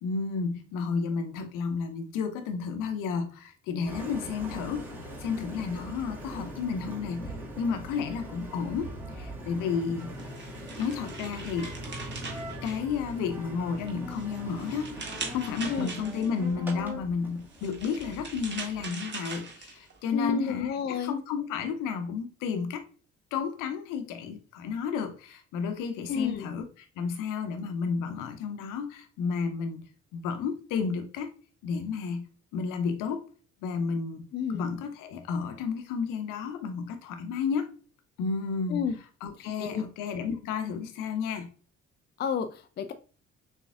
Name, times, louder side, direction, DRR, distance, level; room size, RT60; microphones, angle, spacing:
voice 1, 0.0-4.9 5.2-7.3 7.6-10.1 10.8-11.7 12.6-14.9 15.3-22.8 23.3-26.6 27.0-29.8 30.1-31.3 31.6-32.3 32.5-33.2 33.6-34.3 34.5-37.7 38.2-38.9 39.2-41.5, left 5 dB, 55° left, 0.9 m, -32 dB
Engine, 3.9-18.9, equal, 5° right, 1.6 m, -41 dB
sound 1, 10.0-13.3 13.8-16.5 17.4-20.1, right 4 dB, 30° right, 1.3 m, -42 dB
voice 2, 20.1-21.1 26.1-26.5 34.3-34.7 38.7-38.9 39.4-39.8 42.2-42.9, left 6 dB, 30° left, 0.4 m, -30 dB
6.7 x 2.4 x 2.4 m
figure-of-eight pair, 50°, 37 cm